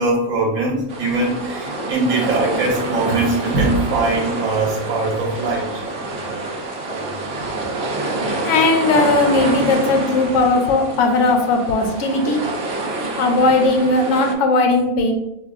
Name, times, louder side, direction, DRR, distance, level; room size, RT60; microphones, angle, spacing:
voice 1, 0.0-5.8, right 2 dB, 90° right, -2 dB, 1.2 m, -21 dB
sound 1, 0.9-14.3, right 2 dB, 55° right, 0.8 m, -27 dB
voice 2, 8.4-12.4 13.2-15.1, left 3 dB, 65° left, 4 dB, 0.9 m, -17 dB
5.8 x 2.3 x 2.4 m, 0.90 s
omnidirectional pair, 1.4 m